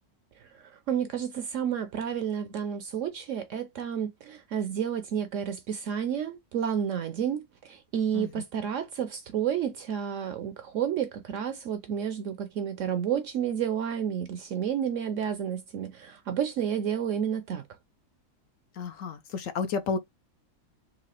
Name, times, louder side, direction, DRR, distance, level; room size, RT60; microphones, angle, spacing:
voice 1, 0.9-17.6, right 8 dB, 65° right, 0.8 m, -30 dB
voice 2, 18.8-20.0, left 5 dB, 70° left, 0.9 m, -31 dB
4.0 x 2.6 x 2.9 m
omnidirectional pair, 1.7 m